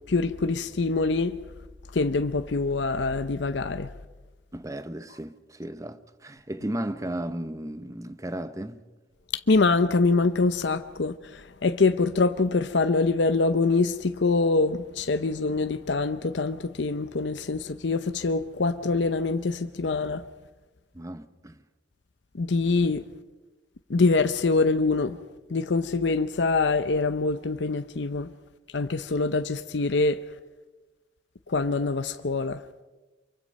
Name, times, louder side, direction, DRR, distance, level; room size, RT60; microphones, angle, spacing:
voice 1, 0.1-1.4 1.9-3.9 9.5-20.2 22.3-23.0 23.9-25.2 25.5-28.3 28.7-30.2 31.5-32.6, left 3 dB, 70° left, 0.7 m, -24 dB
voice 2, 4.5-8.8 20.9-21.6, right 1 dB, 20° right, 0.8 m, -35 dB
25.0 x 23.5 x 5.4 m
head